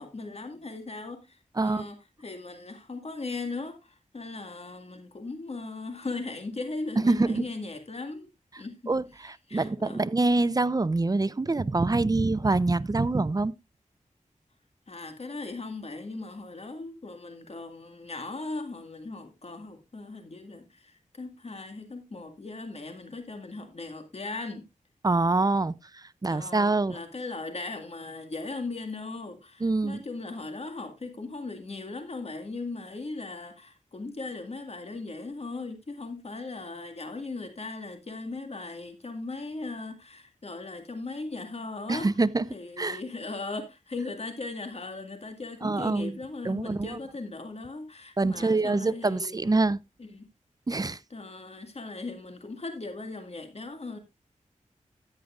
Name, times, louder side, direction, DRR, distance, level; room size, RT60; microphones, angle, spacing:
voice 1, 0.0-8.3 8.6-8.8 9.5-10.0 14.9-24.6 26.3-42.1 42.5-49.6 50.0-50.3 51.1-54.0, left 3 dB, 50° left, 1.9 m, -38 dB
voice 2, 1.6-1.9 7.0-7.4 8.9-13.5 25.0-25.7 26.2-27.0 29.6-30.0 41.9-42.5 42.8-43.0 45.6-46.2 46.4-47.0 48.2-49.8 50.7-51.0, right 3 dB, 30° right, 0.5 m, -25 dB
14.0 x 9.4 x 2.5 m
wide cardioid pair, 60°, 13 cm